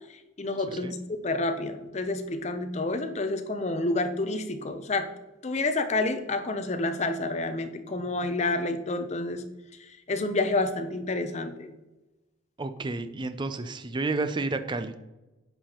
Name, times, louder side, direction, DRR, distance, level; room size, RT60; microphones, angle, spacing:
voice 1, 0.4-5.1 5.4-9.4 10.1-11.7, left 2 dB, 35° left, 8 dB, 0.6 m, -29 dB
voice 2, 12.6-15.0, right 3 dB, 20° right, 10 dB, 0.4 m, -31 dB
9.8 x 5.7 x 2.9 m, 1.1 s
head